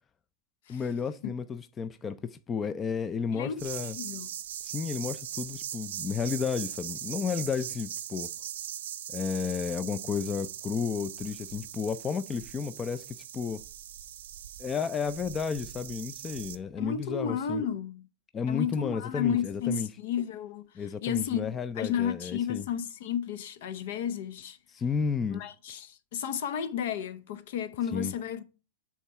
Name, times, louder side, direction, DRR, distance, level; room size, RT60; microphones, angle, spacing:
voice 1, 0.7-4.0 4.6-8.3 9.1-13.6 14.6-17.6 18.3-19.9 20.8-22.6 24.7-25.4 27.9-28.1, left 6 dB, 20° left, 0.4 m, -32 dB
voice 2, 3.3-3.7 4.0-4.3 16.8-18.1 18.5-24.6 25.3-28.4, left 8 dB, 70° left, 0.8 m, -32 dB
sound 1, 3.6-16.6, right 10 dB, 80° right, 0.7 m, -40 dB
7.2 x 3.6 x 5.5 m
hypercardioid pair, 130°, 0 cm